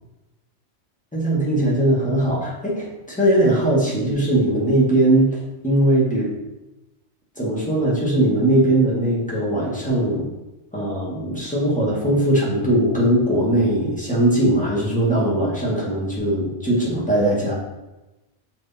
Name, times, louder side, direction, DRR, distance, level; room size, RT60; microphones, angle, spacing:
voice 1, 1.1-6.4 7.4-10.3 10.7-17.5, right 1 dB, 5° left, -6 dB, 1.8 m, -20 dB
6.5 x 4.1 x 4.2 m, 1.0 s
omnidirectional pair, 1.2 m